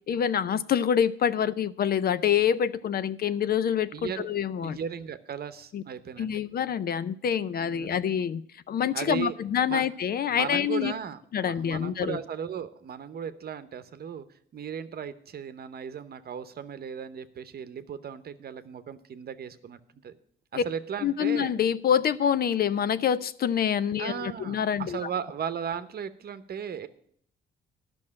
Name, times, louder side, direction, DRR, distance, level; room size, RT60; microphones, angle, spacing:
voice 1, 0.1-4.8 5.7-5.8 6.2-10.9 11.3-12.2 20.5-20.6 21.0-25.1, left 8 dB, 50° left, 15 dB, 0.5 m, -26 dB
voice 2, 3.9-4.3 4.6-6.3 7.6-7.9 8.9-9.3 9.7-9.8 10.3-14.3 14.5-20.2 20.5-21.5 24.0-26.9, right 8 dB, 50° right, 12 dB, 0.9 m, -36 dB
11.0 x 6.1 x 8.6 m, 0.63 s
cardioid pair, 90°, 20 cm